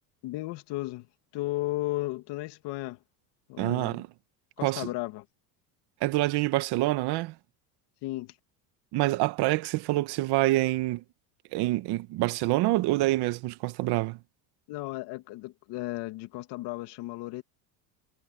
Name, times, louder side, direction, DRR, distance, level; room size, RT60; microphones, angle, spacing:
voice 1, 0.2-1.1 1.3-3.0 3.5-4.0 4.6-5.3 8.0-8.3 14.7-17.4, left 19 dB, 60° left, 2.5 m, -34 dB
voice 2, 3.6-4.1 4.6-4.9 6.0-7.3 8.9-11.0 11.5-14.2, right 18 dB, 60° right, 1.5 m, -26 dB
supercardioid pair, 130°, 46 cm